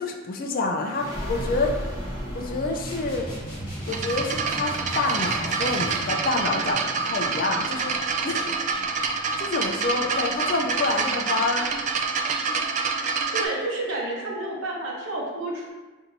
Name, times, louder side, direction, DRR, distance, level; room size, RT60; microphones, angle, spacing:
voice 1, 0.0-1.7 2.3-3.3 3.9-8.0 8.2-8.5 8.9-11.7, left 3 dB, 45° left, 2 dB, 0.4 m, -27 dB
sound 1, 0.8-12.0, equal, 15° right, 1.1 m, -38 dB
sound 2, 2.9-6.2, right 1 dB, 25° left, 1.1 m, -37 dB
sound 3, 3.9-13.5, right 5 dB, 35° right, 0.3 m, -27 dB
voice 2, 13.3-15.7, right 2 dB, 65° right, -3 dB, 1.0 m, -30 dB
5.9 x 2.7 x 2.6 m, 1.2 s
head